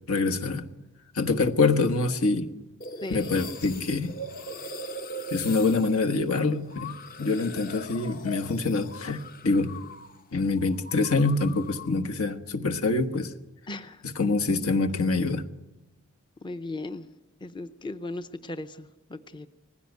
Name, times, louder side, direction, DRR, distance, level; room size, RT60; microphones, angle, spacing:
voice 1, 0.1-0.7 1.1-2.5 3.1-4.2 5.3-9.8 10.3-13.3 14.0-15.5, left 3 dB, 70° left, 1.3 m, -25 dB
sound 1, 2.8-10.2 10.5-12.0, left 1 dB, 40° left, 1.0 m, -40 dB
voice 2, 13.7-14.0 16.4-17.1 17.4-19.5, left 2 dB, 20° left, 0.6 m, -37 dB
20.5 x 16.0 x 9.4 m
head